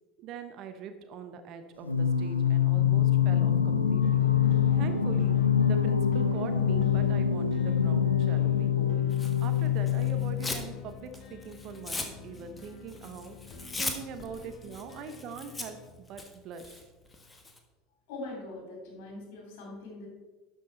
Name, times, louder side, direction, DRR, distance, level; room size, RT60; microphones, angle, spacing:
voice 1, 0.2-4.3 4.7-5.4 5.7-9.0 9.4-13.4 13.8-16.9, right 6 dB, 45° right, 8 dB, 0.9 m, -42 dB
Singing, 1.8-10.8, left 8 dB, 85° left, 0.5 m, -25 dB
sound 1, 4.0-15.9, left 6 dB, 40° left, 1.0 m, -49 dB
Tearing, 9.1-10.7 11.1-17.6, left 2 dB, 15° left, 1.3 m, -40 dB
voice 2, 18.1-20.1, left 2 dB, 55° left, 0 dB, 3.0 m, -42 dB
11.5 x 6.1 x 4.1 m, 1.2 s
figure-of-eight pair, 70°, 0 cm